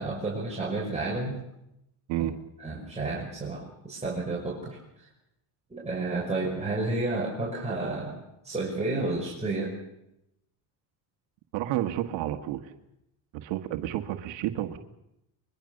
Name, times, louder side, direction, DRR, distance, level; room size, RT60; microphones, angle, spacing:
voice 1, 0.0-1.4 2.6-4.8 5.7-8.2 8.4-9.7, right 2 dB, 15° right, -3 dB, 6.0 m, -31 dB
voice 2, 11.5-12.6 13.3-14.8, right 13 dB, 85° right, 7 dB, 1.6 m, -30 dB
23.5 x 22.5 x 6.6 m, 0.84 s
cardioid pair, 95°, 44 cm